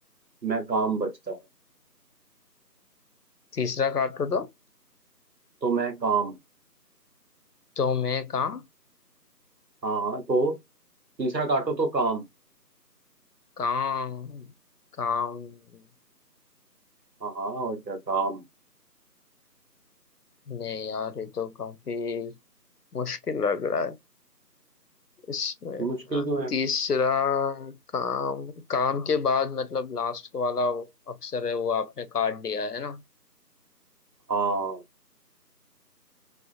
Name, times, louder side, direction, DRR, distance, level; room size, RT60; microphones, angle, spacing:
voice 1, 0.4-1.4 5.6-6.4 9.8-10.6 11.2-12.2 17.2-18.4 25.8-26.5 34.3-34.8, right 3 dB, 85° right, 1.1 m, -27 dB
voice 2, 3.5-4.5 7.8-8.6 13.6-14.5 15.0-15.8 20.5-22.4 22.9-24.0 25.3-33.0, left 5 dB, 65° left, 0.6 m, -29 dB
2.5 x 2.4 x 2.4 m
figure-of-eight pair, 170°, 50 cm